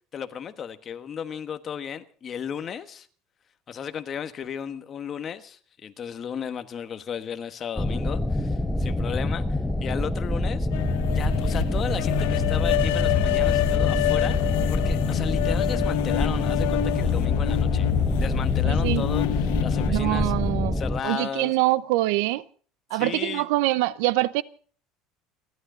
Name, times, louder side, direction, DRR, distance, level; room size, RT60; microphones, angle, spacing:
voice 1, 0.1-3.1 3.7-10.7 11.1-14.4 14.7-17.9 18.2-19.2 19.6-20.3 20.7-21.5 22.9-23.5, left 8 dB, 30° left, 1.3 m, -34 dB
sound 1, 7.8-21.0, left 1 dB, 5° left, 0.9 m, -26 dB
sound 2, 10.7-19.9, left 17 dB, 85° left, 1.0 m, -26 dB
voice 2, 18.6-19.1 19.8-22.4 22.9-24.4, right 18 dB, 80° right, 0.7 m, -24 dB
29.5 x 12.0 x 3.9 m
cardioid pair, 160°, 0 cm